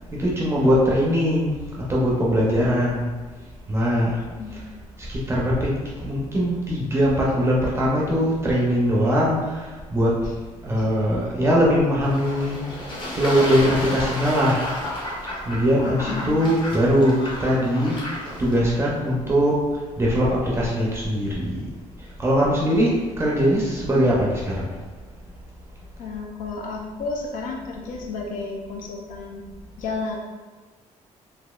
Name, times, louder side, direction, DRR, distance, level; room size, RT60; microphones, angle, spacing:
voice 1, 0.2-1.5 1.9-3.1 3.7-4.2 5.1-5.7 6.0-9.7 9.9-10.1 10.6-12.6 13.1-14.7 15.5-18.0 18.4-19.5 20.0-21.6 22.2-24.6, equal, 20° right, -5 dB, 0.5 m, -21 dB
voice 2, 4.4-4.8 10.8-10.9 16.0-16.5 26.0-29.4 29.8-30.2, left 3 dB, 85° left, 0 dB, 0.5 m, -32 dB
Fowl / Bird / Water, 12.0-18.6, left 1 dB, 40° left, 0.8 m, -32 dB
4.0 x 2.6 x 2.2 m, 1.3 s
cardioid pair, 155°, 13 cm